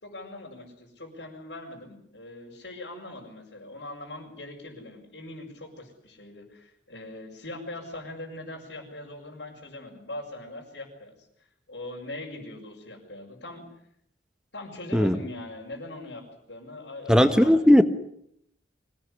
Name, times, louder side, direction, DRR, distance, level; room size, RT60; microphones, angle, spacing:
voice 1, 0.0-11.1 11.7-13.6 14.5-17.5, left 2 dB, 85° left, -5 dB, 6.1 m, -41 dB
voice 2, 17.1-17.8, equal, 5° right, 10 dB, 1.3 m, -17 dB
25.0 x 18.5 x 9.9 m, 0.72 s
head